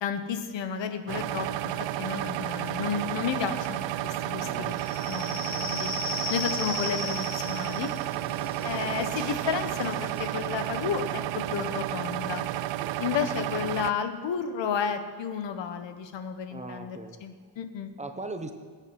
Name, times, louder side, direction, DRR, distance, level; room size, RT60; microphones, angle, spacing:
voice 1, 0.0-1.7 2.0-4.7 5.1-5.9 6.3-7.9 8.6-12.5 13.0-17.9, left 7 dB, 90° left, 8 dB, 1.4 m, -32 dB
sound 1, 1.1-13.9, right 14 dB, 90° right, 0.6 m, -32 dB
voice 2, 4.4-4.8 5.5-5.7 8.1-8.3 12.8-13.0 16.5-17.2 18.0-18.5, right 2 dB, 15° right, 7 dB, 0.8 m, -40 dB
sound 2, 4.7-12.0, left 2 dB, 50° left, 3.8 m, -37 dB
21.0 x 8.9 x 6.1 m, 1.6 s
wide cardioid pair, 180°, 43 cm